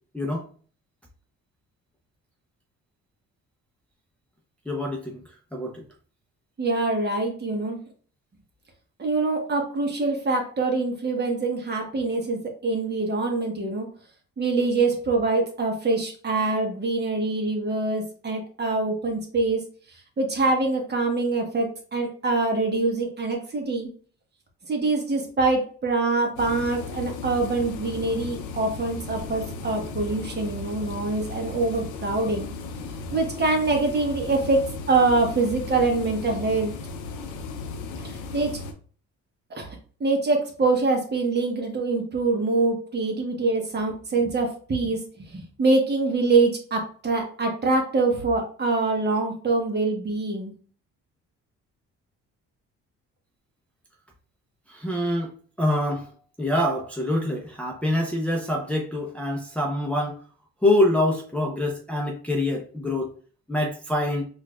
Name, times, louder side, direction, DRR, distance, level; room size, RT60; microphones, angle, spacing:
voice 1, 0.1-0.4 4.7-5.2 5.5-5.8 54.7-55.3 55.6-56.1 56.4-60.2 60.6-63.1 63.5-64.2, left 1 dB, 5° left, -2 dB, 0.6 m, -25 dB
voice 2, 6.6-7.8 9.0-13.9 14.4-19.6 20.2-23.9 24.7-32.5 33.1-36.7 38.0-38.6 39.5-50.5, right 3 dB, 35° right, 2 dB, 1.0 m, -24 dB
sound 1, 26.4-38.7, left 4 dB, 85° left, 0.6 m, -36 dB
4.4 x 2.4 x 2.2 m, 0.43 s
cardioid pair, 90°, 30 cm